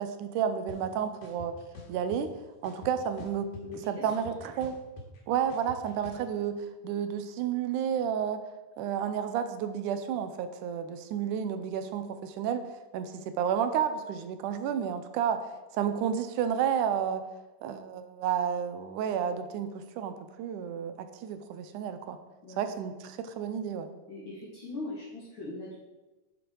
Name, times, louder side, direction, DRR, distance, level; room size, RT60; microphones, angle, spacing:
voice 1, 0.0-1.5 1.9-2.3 2.6-3.5 3.9-4.7 5.3-8.4 8.8-12.6 12.9-15.4 15.7-17.2 17.6-22.2 22.6-23.9, right 8 dB, 85° right, 9 dB, 2.2 m, -31 dB
sound 1, 0.7-0.8 1.2-2.2 2.6-3.8 4.1-6.2, left 2 dB, 70° left, 3.2 m, -46 dB
voice 2, 3.6-4.3 22.4-22.6 24.1-25.7, left 2 dB, 40° left, -7 dB, 2.5 m, -40 dB
11.5 x 7.0 x 4.6 m, 1.1 s
omnidirectional pair, 3.6 m